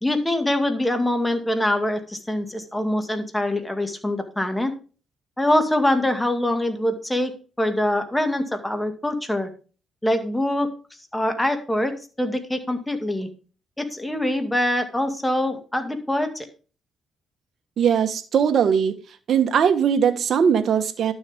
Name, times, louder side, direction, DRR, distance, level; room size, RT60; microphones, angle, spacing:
voice 1, 0.0-4.7 5.4-7.3 7.6-9.5 10.0-10.7 11.1-11.9 12.2-13.3 13.8-16.5, left 1 dB, 10° left, 6 dB, 2.0 m, -24 dB
voice 2, 17.8-18.9 19.3-21.1, right 7 dB, 60° right, 8 dB, 1.4 m, -20 dB
12.0 x 7.0 x 3.6 m, 0.35 s
cardioid pair, 90°, 0 cm